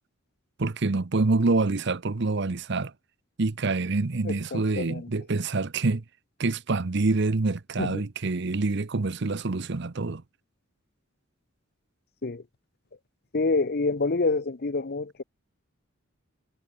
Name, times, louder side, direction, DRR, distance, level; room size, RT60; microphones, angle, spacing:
voice 1, 0.6-2.9 3.4-6.0 6.4-10.2, right 3 dB, 55° right, 0.8 m, -26 dB
voice 2, 4.2-5.1 7.8-8.0 12.2-12.4 13.3-15.2, left 3 dB, 50° left, 0.8 m, -27 dB
head